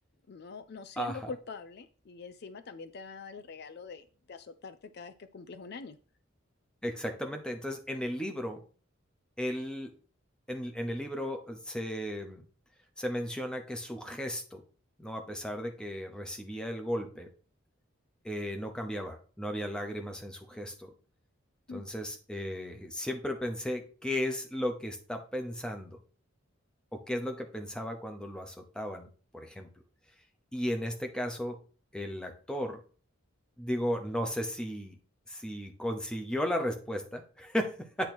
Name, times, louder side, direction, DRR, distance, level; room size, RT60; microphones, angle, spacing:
voice 1, 0.3-6.0 21.7-21.8, left 4 dB, 50° left, 10 dB, 0.4 m, -44 dB
voice 2, 1.0-1.3 6.8-8.6 9.4-9.9 10.5-12.5 13.0-14.6 15.0-17.3 18.2-20.9 21.7-26.0 26.9-29.1 29.3-29.7 30.5-31.6 31.9-32.8 33.6-35.0 35.3-38.1, equal, 5° left, 4 dB, 0.9 m, -35 dB
8.8 x 3.0 x 6.1 m, 0.40 s
head